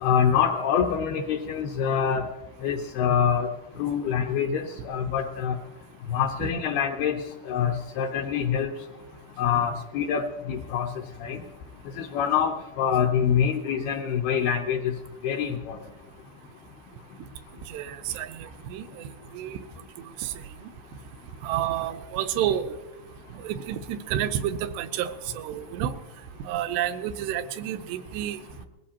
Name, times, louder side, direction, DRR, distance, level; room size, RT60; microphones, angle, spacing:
voice 1, 0.0-2.2 2.6-3.5 3.8-5.6 6.1-7.1 7.5-8.7 9.4-10.9 11.2-11.4 12.0-14.9 15.2-15.8, left 8 dB, 75° left, 2 dB, 2.6 m, -25 dB
voice 2, 17.7-18.3 18.7-18.8 19.4-19.6 21.4-22.7 23.4-25.9 26.5-28.4, right 11 dB, 85° right, 10 dB, 2.8 m, -29 dB
21.0 x 15.5 x 2.8 m, 1.1 s
omnidirectional pair, 4.9 m